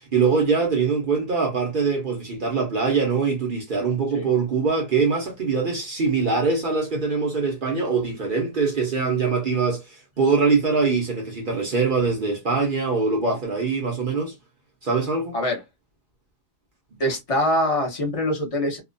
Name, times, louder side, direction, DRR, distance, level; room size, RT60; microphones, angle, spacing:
voice 1, 0.0-14.3 14.8-15.3, right 4 dB, 55° right, 0.6 m, -23 dB
voice 2, 17.0-18.8, left 1 dB, 35° left, 0.6 m, -24 dB
2.9 x 2.1 x 2.5 m
omnidirectional pair, 1.8 m